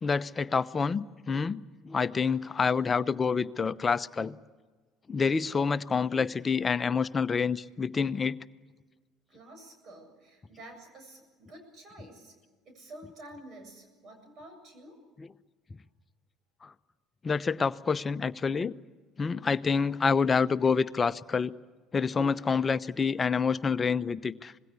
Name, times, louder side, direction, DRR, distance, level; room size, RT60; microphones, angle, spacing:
voice 1, 0.0-4.4 5.1-8.4 16.6-16.7 17.2-18.7 19.2-21.5 21.9-24.5, left 5 dB, 30° left, 0.9 m, -27 dB
voice 2, 9.3-12.3 12.6-15.0, right 1 dB, 50° right, 7.7 m, -49 dB
26.5 x 21.0 x 8.5 m
figure-of-eight pair, 60°, 0 cm